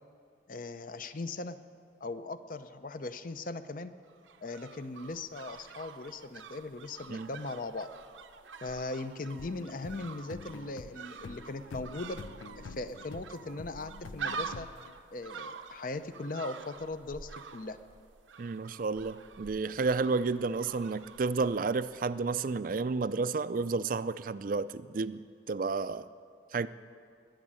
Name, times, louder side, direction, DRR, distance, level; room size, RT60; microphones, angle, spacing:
voice 1, 0.5-1.6 2.0-3.9 4.4-7.9 8.6-12.2 12.6-14.7 15.1-17.8, left 2 dB, 45° left, 11 dB, 0.6 m, -39 dB
sound 1, 4.0-22.2 22.5-22.6, right 5 dB, 80° right, 0.7 m, -46 dB
sound 2, 9.4-14.9, left 4 dB, 90° left, 0.5 m, -48 dB
voice 2, 18.4-26.1 26.5-26.7, right 4 dB, 45° right, 14 dB, 0.4 m, -31 dB
21.0 x 7.2 x 8.9 m, 2.3 s
head